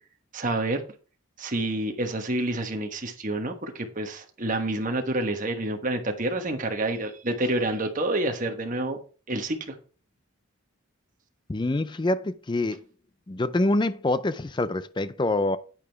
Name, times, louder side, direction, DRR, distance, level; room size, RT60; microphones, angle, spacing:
voice 1, 0.3-0.8 1.4-9.0 9.3-9.7, right 2 dB, 35° right, 1.2 m, -28 dB
voice 2, 11.5-12.8 13.3-15.6, left 2 dB, 20° left, 0.4 m, -25 dB
8.9 x 8.6 x 3.4 m
head